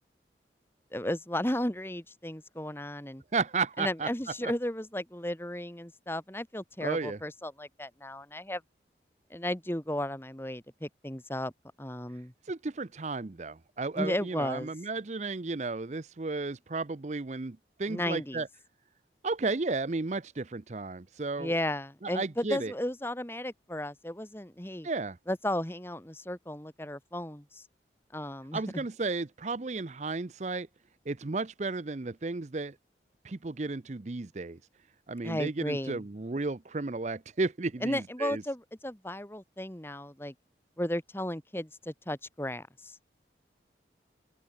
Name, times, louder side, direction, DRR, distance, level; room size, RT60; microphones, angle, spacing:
voice 1, 0.9-3.2 3.8-8.6 9.3-11.5 11.8-12.3 13.9-14.7 17.9-18.4 21.4-24.9 25.3-27.6 28.1-28.8 35.2-36.0 37.8-40.3 40.8-43.0, left 1 dB, 15° left, 1.8 m, -34 dB
voice 2, 3.3-4.1 4.4-4.5 6.8-7.2 12.5-18.5 19.2-21.5 22.0-22.7 24.8-25.2 28.5-30.7 31.1-32.7 33.2-34.6 35.1-38.4, right 3 dB, 40° right, 0.6 m, -33 dB
open air
head